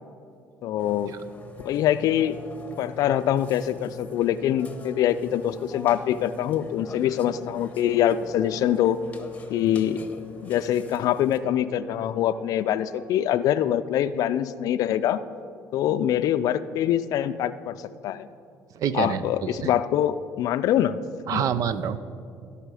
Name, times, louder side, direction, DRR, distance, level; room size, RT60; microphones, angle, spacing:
voice 1, 0.6-1.1 1.6-2.4 2.8-9.0 9.5-10.0 10.4-15.2 15.7-17.8 18.0-18.3 18.9-21.0 21.3-21.5, left 11 dB, 65° left, 13 dB, 0.4 m, -24 dB
Burping eructation, 0.8-11.4, left 3 dB, 20° left, 1.0 m, -43 dB
sound 1, 1.5-13.1, left 2 dB, 80° right, 2.8 m, -49 dB
voice 2, 18.8-19.7 21.3-22.0, right 8 dB, 60° right, 14 dB, 0.5 m, -27 dB
16.0 x 5.6 x 4.9 m, 2.4 s
supercardioid pair, 80°, 7 cm